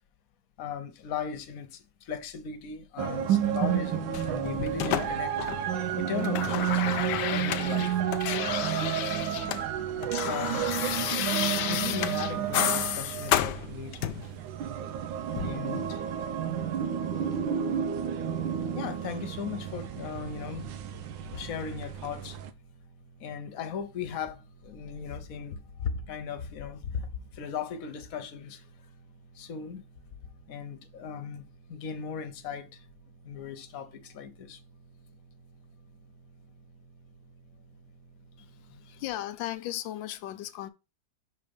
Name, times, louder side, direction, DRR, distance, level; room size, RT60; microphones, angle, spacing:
voice 1, 0.6-5.5 6.0-8.0 10.2-10.7 11.7-14.2 15.4-16.0 18.7-20.7 21.3-22.4 23.2-28.7 29.3-29.8 30.5-31.4 31.7-32.8 33.2-34.6 38.7-38.8, left 7 dB, 55° left, 1.2 m, -37 dB
sound 1, 3.0-22.5, right 9 dB, 90° right, 1.4 m, -31 dB
sound 2, 4.1-5.8 6.1-9.6 9.9-14.3 15.3-15.5, left 11 dB, 75° left, 1.2 m, -31 dB
sound 3, 19.5-39.1, right 4 dB, 60° right, 1.3 m, -57 dB
voice 2, 38.4-40.7, left 13 dB, 90° left, 1.3 m, -37 dB
5.7 x 4.1 x 5.2 m
omnidirectional pair, 2.0 m